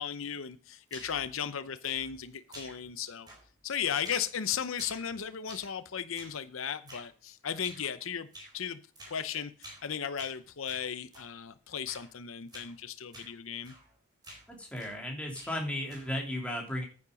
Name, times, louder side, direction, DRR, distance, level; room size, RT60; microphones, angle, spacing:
voice 1, 0.0-3.3 3.6-8.3 8.5-8.8 9.1-13.7, left 8 dB, 75° left, 0.7 m, -36 dB
sound 1, 0.9-1.3 1.8-2.2 2.5-3.0 3.3-3.7 4.0-4.3 4.7-5.8 6.1-6.4 6.9-7.1 7.6-7.9 8.3-8.6 9.0-9.2 9.6-9.9 10.2-11.3 11.9-12.1 12.5-12.7 13.1-13.4 13.6-13.9 14.2-15.0 15.3-16.2, right 1 dB, 20° right, 4.0 m, -50 dB
voice 2, 14.5-16.8, left 1 dB, 5° left, 2.7 m, -35 dB
9.6 x 8.5 x 5.2 m
head